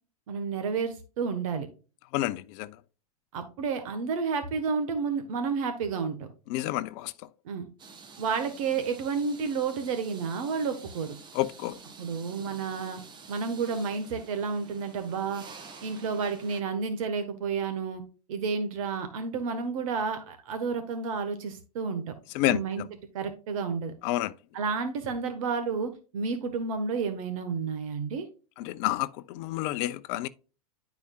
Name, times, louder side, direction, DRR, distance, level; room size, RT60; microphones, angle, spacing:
voice 1, 0.3-1.7 3.3-6.2 7.4-7.7 8.2-11.2 12.0-13.0 13.3-15.4 15.8-18.0 18.3-22.1 22.5-22.8 23.1-23.9 24.5-28.3, right 5 dB, 60° right, 1.4 m, -31 dB
voice 2, 2.1-2.8 6.5-7.1 11.3-11.8 22.3-22.9 24.0-24.3 28.6-30.3, left 16 dB, 50° left, 0.6 m, -29 dB
sound 1, 7.8-16.6, right 4 dB, 25° right, 1.3 m, -49 dB
10.5 x 4.9 x 2.4 m
hypercardioid pair, 110°, 19 cm